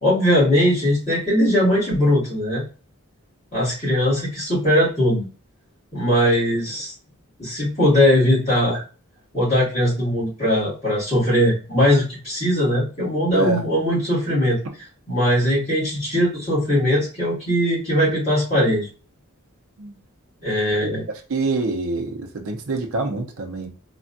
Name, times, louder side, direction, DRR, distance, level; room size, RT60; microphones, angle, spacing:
voice 1, 0.0-2.6 3.5-5.3 5.9-6.9 7.4-8.8 9.3-14.6 15.1-18.9 20.4-21.0, equal, 30° left, -9 dB, 1.5 m, -20 dB
voice 2, 21.3-23.7, right 2 dB, 65° right, 3 dB, 0.6 m, -25 dB
3.3 x 2.2 x 2.5 m, 0.36 s
head